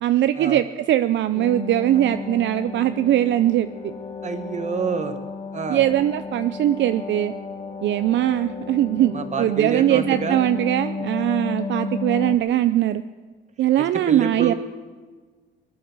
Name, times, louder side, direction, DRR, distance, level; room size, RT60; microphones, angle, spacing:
voice 1, 0.0-3.9 5.7-7.3 7.8-13.0 13.6-14.5, right 12 dB, 65° right, 11 dB, 0.5 m, -21 dB
sound 1, 1.3-12.4, left 4 dB, 30° left, 1.2 m, -33 dB
voice 2, 4.2-5.2 5.5-5.8 9.0-10.6 13.8-14.5, right 5 dB, 35° right, 8 dB, 1.5 m, -28 dB
21.0 x 9.4 x 6.7 m, 1.4 s
cardioid pair, 90°, 20 cm